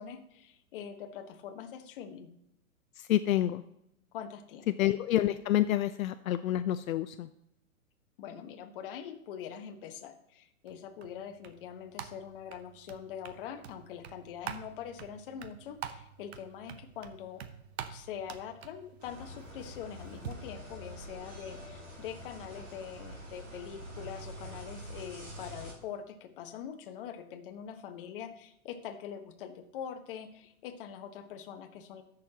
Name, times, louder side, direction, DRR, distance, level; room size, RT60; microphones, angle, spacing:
voice 1, 0.0-2.3 4.1-4.8 8.2-17.4 17.9-32.0, left 8 dB, 40° left, 6 dB, 1.0 m, -43 dB
voice 2, 3.1-3.6 4.8-7.3, left 13 dB, 75° left, 11 dB, 0.6 m, -28 dB
sound 1, 10.7-20.3, right 9 dB, 50° right, 0.8 m, -47 dB
sound 2, 19.0-25.7, equal, 20° right, 1.8 m, -46 dB
15.0 x 6.5 x 2.9 m, 0.81 s
hypercardioid pair, 155°, 42 cm